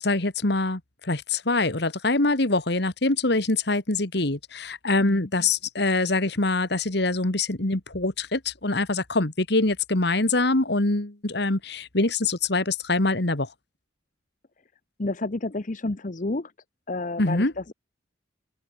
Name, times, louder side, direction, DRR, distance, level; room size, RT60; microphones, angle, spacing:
voice 1, 0.0-13.5 17.2-17.5, left 2 dB, 60° left, 2.0 m, -24 dB
voice 2, 5.0-5.3 15.0-16.5 16.9-17.7, left 2 dB, 40° left, 0.9 m, -30 dB
open air
head